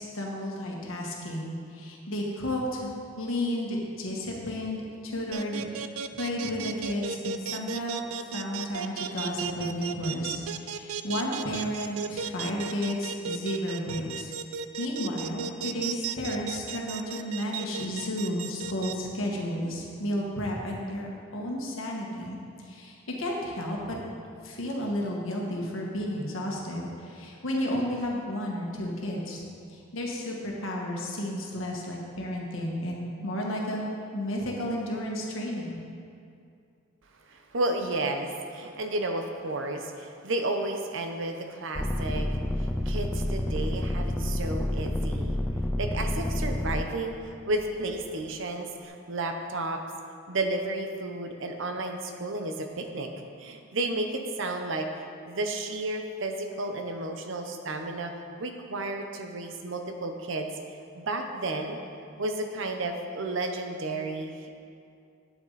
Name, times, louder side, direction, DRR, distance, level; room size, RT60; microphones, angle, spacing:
voice 1, 0.0-2.9 3.2-5.9 6.2-14.3 14.8-24.0 24.4-29.4 29.7-35.8, left 1 dB, 70° left, -2 dB, 1.5 m, -32 dB
sound 1, 5.3-18.9, right 7 dB, 85° right, 0.4 m, -34 dB
voice 2, 37.3-45.4 45.8-49.8 50.3-53.1 53.4-54.9 55.3-58.1 58.4-60.5 60.9-61.8 62.2-64.5, right 2 dB, 60° right, 5 dB, 0.7 m, -32 dB
sound 2, 41.7-46.8 47.5-48.2, left 1 dB, 5° left, 0.4 m, -29 dB
9.1 x 8.3 x 4.0 m, 2.4 s
head